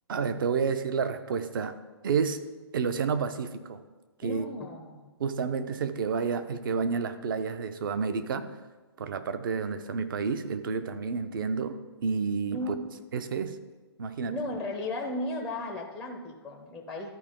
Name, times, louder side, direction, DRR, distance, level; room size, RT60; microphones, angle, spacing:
voice 1, 0.1-1.8 2.0-2.4 2.7-3.8 4.2-4.4 5.2-8.5 9.0-12.7 13.1-13.6 14.0-14.4, right 5 dB, 50° right, 11 dB, 0.7 m, -30 dB
voice 2, 4.2-5.1 12.5-12.7 14.3-17.1, left 1 dB, ahead, 3 dB, 0.5 m, -35 dB
13.0 x 4.7 x 3.7 m, 1.2 s
hypercardioid pair, 155°, 14 cm